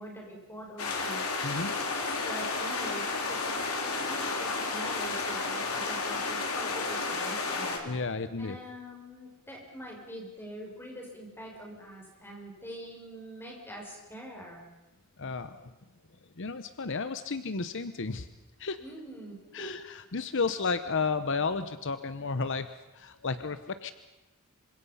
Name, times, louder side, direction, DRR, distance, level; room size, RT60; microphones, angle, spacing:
voice 1, 0.0-3.5 3.8-7.9 8.4-14.6 18.8-19.7, equal, 10° left, -1 dB, 6.9 m, -44 dB
sound 1, 0.8-7.8, left 3 dB, 80° left, 4.0 m, -32 dB
voice 2, 7.8-8.6 15.2-15.7 16.4-18.3 18.6-18.8 19.5-23.9, left 4 dB, 60° left, 11 dB, 0.9 m, -32 dB
27.0 x 25.5 x 5.7 m, 1.1 s
head